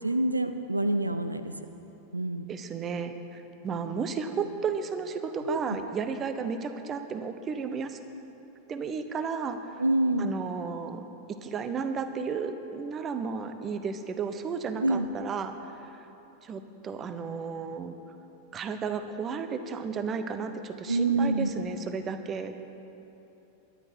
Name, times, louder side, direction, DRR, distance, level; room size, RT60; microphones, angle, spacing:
voice 1, 0.0-1.5 2.1-2.5 5.4-5.8 9.8-10.3 14.8-15.1 20.9-21.6, right 2 dB, 85° right, 9 dB, 0.6 m, -27 dB
voice 2, 2.5-8.0 8.7-9.8 10.2-11.0 11.4-16.1 16.4-18.0 18.5-22.6, right 5 dB, 25° right, 9 dB, 1.0 m, -33 dB
23.5 x 11.0 x 4.5 m, 3.0 s
figure-of-eight pair, 90°, 0 cm